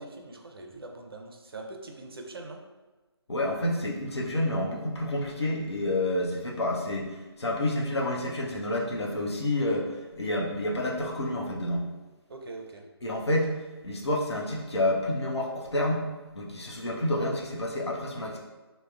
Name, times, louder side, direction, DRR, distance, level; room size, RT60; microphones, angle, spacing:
voice 1, 0.0-2.6 12.3-12.8, right 2 dB, 60° right, 3 dB, 0.5 m, -42 dB
voice 2, 3.3-11.8 13.0-13.5 13.8-16.1 16.3-18.4, left 1 dB, 80° left, -2 dB, 0.7 m, -29 dB
3.4 x 2.1 x 2.3 m, 1.2 s
figure-of-eight pair, 150°, 14 cm